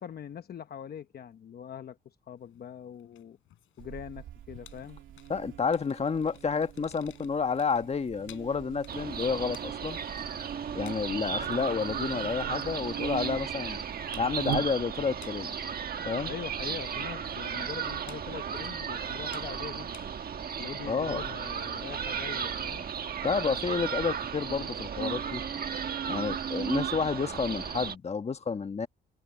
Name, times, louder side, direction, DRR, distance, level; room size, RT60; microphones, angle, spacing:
voice 1, 0.0-3.4 3.8-5.0 16.2-20.0 20.6-22.9, left 9 dB, 50° left, 1.0 m, -42 dB
sound 1, 2.4-20.5, left 14 dB, 85° left, 5.8 m, -59 dB
Buzz, 3.8-15.2, right 12 dB, 80° right, 2.6 m, -43 dB
voice 2, 5.3-10.0 10.7-13.8 14.2-15.5 16.0-16.3 20.9-21.2 23.2-25.4 26.1-28.9, left 5 dB, 30° left, 1.4 m, -30 dB
sound 2, 8.9-27.9, right 7 dB, 50° right, 1.6 m, -35 dB
cardioid pair, 90°, 20 cm